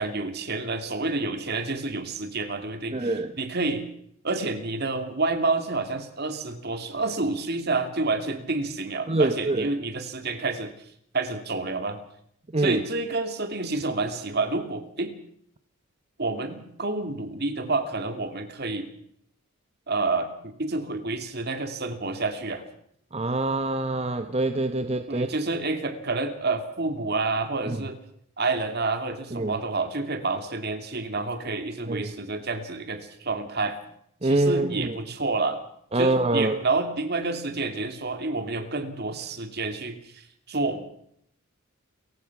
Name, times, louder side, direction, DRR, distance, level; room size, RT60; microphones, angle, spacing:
voice 1, 0.0-3.9 4.2-10.7 11.1-12.0 12.6-15.1 16.2-18.9 19.9-22.6 25.1-28.0 28.4-33.8 34.2-35.6 35.9-40.9, right 3 dB, 50° right, 7 dB, 2.6 m, -29 dB
voice 2, 2.9-3.3 9.1-9.7 12.5-12.8 23.1-25.3 27.6-27.8 29.3-29.6 31.9-32.1 34.2-35.0 35.9-36.6, right 2 dB, 30° right, 8 dB, 1.0 m, -25 dB
29.5 x 16.0 x 6.1 m, 0.70 s
head